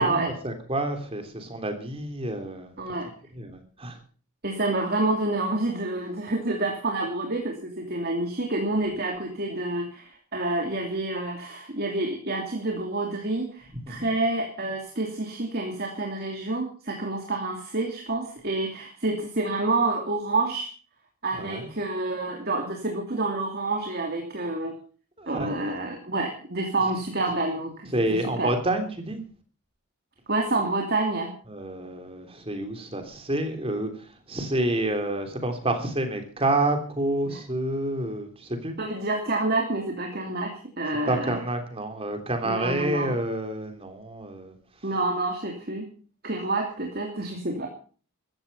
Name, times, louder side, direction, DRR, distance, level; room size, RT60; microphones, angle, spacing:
voice 1, 0.0-2.8 3.3-4.0 13.9-14.1 21.4-21.7 25.2-26.0 27.9-29.2 31.5-38.8 41.1-44.6, right 1 dB, 25° right, 6 dB, 3.3 m, -29 dB
voice 2, 2.8-3.1 4.4-20.7 21.2-24.7 25.3-28.5 30.3-31.3 37.3-37.4 38.8-41.4 42.4-43.2 44.8-45.9 46.2-47.7, right 2 dB, 45° right, 2 dB, 2.8 m, -28 dB
15.0 x 14.5 x 5.6 m, 0.42 s
head